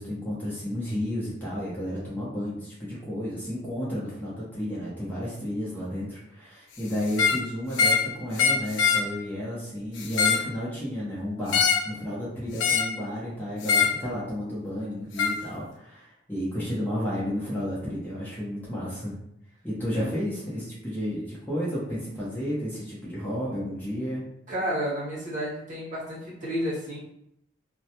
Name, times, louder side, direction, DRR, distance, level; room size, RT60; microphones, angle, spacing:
voice 1, 0.0-19.1 19.6-24.2, equal, 10° left, -8 dB, 0.6 m, -32 dB
sound 1, 7.1-7.4 7.7-8.1 8.4-9.1 10.0-10.5 11.5-11.9 12.6-13.0 13.6-14.0 15.2-15.4, left 6 dB, 75° left, 0.3 m, -23 dB
voice 2, 24.5-27.0, equal, 40° right, -7 dB, 0.9 m, -31 dB
2.2 x 2.1 x 2.8 m, 0.78 s
head